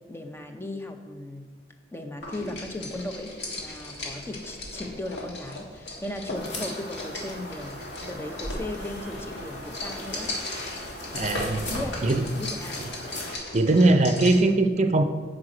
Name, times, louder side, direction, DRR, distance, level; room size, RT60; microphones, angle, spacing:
voice 1, 0.1-1.5 1.9-7.8 8.1-10.4 11.7-12.0 12.4-12.8, left 1 dB, 15° left, 5 dB, 0.5 m, -37 dB
sound 1, 2.2-14.5, left 1 dB, 75° left, 1.6 m, -37 dB
sound 2, 6.3-13.3, left 1 dB, 90° left, 1.7 m, -39 dB
voice 2, 11.1-11.6 12.0-12.2 13.5-15.0, right 2 dB, 40° right, 7 dB, 0.5 m, -20 dB
7.8 x 4.9 x 4.9 m, 1.4 s
head